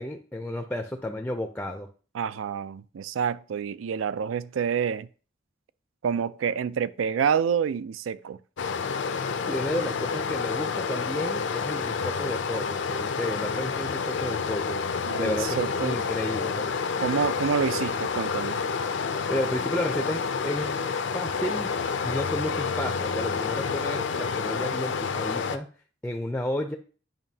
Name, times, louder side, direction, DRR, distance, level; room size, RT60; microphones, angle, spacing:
voice 1, 0.0-1.9 9.5-14.8 15.2-16.7 19.3-20.8 21.1-21.7 22.0-25.7 26.0-26.8, left 1 dB, 5° left, 0.4 m, -32 dB
voice 2, 2.1-5.1 6.0-8.4 15.1-16.0 17.0-18.6, right 7 dB, 80° right, 0.4 m, -28 dB
Stream, 8.6-25.6, left 5 dB, 65° left, 0.5 m, -29 dB
9.1 x 5.5 x 2.8 m
head